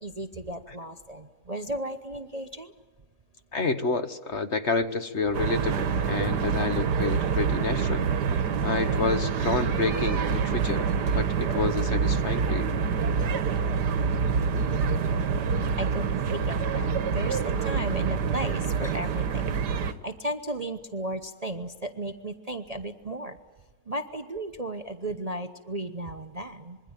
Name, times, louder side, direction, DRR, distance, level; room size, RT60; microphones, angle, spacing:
voice 1, 0.0-2.7 13.2-13.3 15.8-23.4 23.9-26.8, right 1 dB, 30° right, 7 dB, 0.9 m, -35 dB
voice 2, 3.5-10.9 11.1-12.7, left 4 dB, 45° left, 9 dB, 1.4 m, -29 dB
sound 1, 5.3-19.9, right 6 dB, 85° right, 1.7 m, -26 dB
26.0 x 22.5 x 9.0 m, 1.3 s
omnidirectional pair, 1.8 m